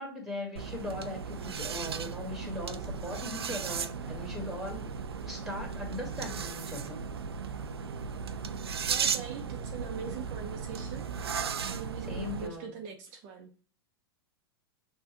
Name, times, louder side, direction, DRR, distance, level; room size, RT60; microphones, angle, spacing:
voice 1, 0.0-4.9 5.3-7.0 12.1-12.7, left 1 dB, ahead, 1 dB, 1.8 m, -39 dB
sound 1, 0.6-12.5, right 6 dB, 85° right, 0.4 m, -36 dB
voice 2, 8.9-11.1 11.7-13.5, right 7 dB, 45° right, 2 dB, 0.7 m, -42 dB
6.1 x 2.4 x 2.8 m, 0.40 s
hypercardioid pair, 105°, 13 cm